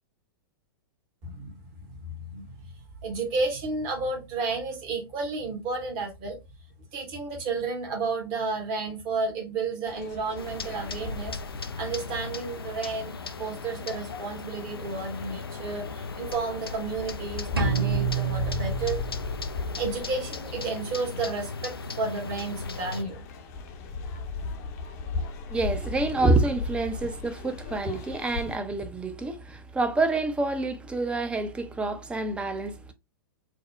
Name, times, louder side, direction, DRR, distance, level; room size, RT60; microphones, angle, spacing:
voice 1, 1.2-1.5 2.3-2.4 3.0-6.4 6.9-11.3 11.8-13.1 13.4-19.0 19.8-23.2, right 3 dB, 35° right, 1.0 m, -31 dB
sound 1, 9.9-28.6, left 4 dB, 40° left, 0.7 m, -38 dB
sound 2, 10.4-23.0, left 4 dB, 80° left, 0.4 m, -38 dB
sound 3, 17.6-19.5, right 8 dB, 80° right, 0.8 m, -28 dB
voice 2, 25.5-32.9, right 2 dB, 10° right, 0.5 m, -27 dB
5.0 x 2.1 x 2.3 m
figure-of-eight pair, 100°, 12 cm